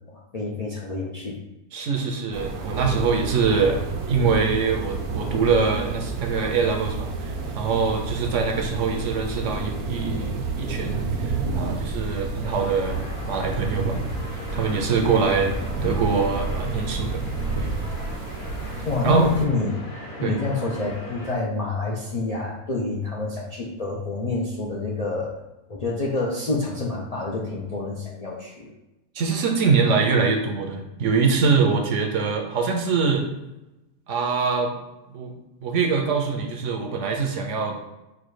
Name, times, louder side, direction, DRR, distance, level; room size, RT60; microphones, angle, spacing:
voice 1, 0.1-1.4 18.8-19.7 20.2-25.4 25.7-28.7, left 3 dB, 70° left, -3 dB, 0.3 m, -27 dB
voice 2, 1.7-3.8 4.1-13.0 13.2-14.0 14.5-15.6 15.8-17.3 17.5-17.7 19.0-19.3 20.2-20.4 29.1-33.3 34.1-34.8 35.1-35.3 35.6-37.8, right 5 dB, 65° right, 3 dB, 0.9 m, -23 dB
sound 1, 2.3-19.5, right 3 dB, 85° right, 1.2 m, -30 dB
sound 2, 12.4-21.3, left 1 dB, 50° left, 1.1 m, -39 dB
4.9 x 2.2 x 4.7 m, 0.99 s
omnidirectional pair, 1.5 m